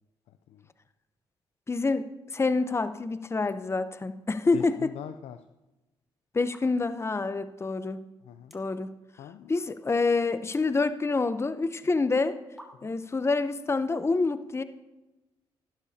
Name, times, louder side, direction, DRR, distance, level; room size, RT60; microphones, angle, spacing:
voice 1, 0.3-0.7 4.5-5.4 8.2-8.6 9.2-9.5 12.8-12.9, left 9 dB, 80° left, 9 dB, 0.5 m, -42 dB
voice 2, 1.7-4.9 6.3-8.0 8.5-8.9 9.5-12.4 12.8-14.6, left 3 dB, 25° left, 12 dB, 0.7 m, -27 dB
sound 1, 2.7-2.9 3.2-3.6 4.4-5.1 5.4-5.5 6.4-7.0 7.5-7.6 7.8-7.9 8.4-8.8 9.2-9.7 10.0-11.4 12.1-12.2 12.6-13.1, equal, ahead, 2.1 m, -53 dB
16.0 x 12.0 x 2.8 m, 1.0 s
supercardioid pair, 60°, 11 cm